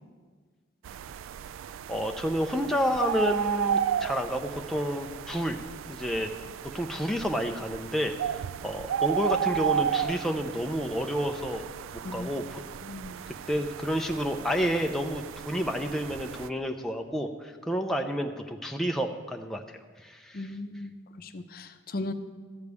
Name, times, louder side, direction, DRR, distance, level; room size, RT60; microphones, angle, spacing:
sound 1, 0.8-16.5, right 9 dB, 90° right, 0.3 m, -33 dB
voice 1, 1.9-5.6 5.9-6.3 6.7-11.7 12.1-12.6 13.5-19.6 20.0-20.5, equal, ahead, 3 dB, 0.5 m, -30 dB
voice 2, 12.8-13.2 20.3-20.9 21.2-22.1, left 2 dB, 50° left, 8 dB, 0.6 m, -37 dB
13.0 x 5.2 x 8.1 m, 1.5 s
head